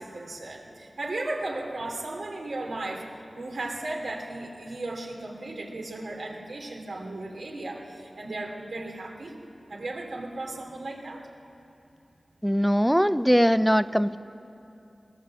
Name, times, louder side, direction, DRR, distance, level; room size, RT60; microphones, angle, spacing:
voice 1, 0.0-3.1 3.3-9.3 9.7-11.2, right 2 dB, 85° right, 0 dB, 2.9 m, -35 dB
voice 2, 12.4-14.2, equal, ahead, 14 dB, 0.4 m, -21 dB
22.0 x 17.5 x 7.7 m, 2.7 s
wide cardioid pair, 95°, 0 cm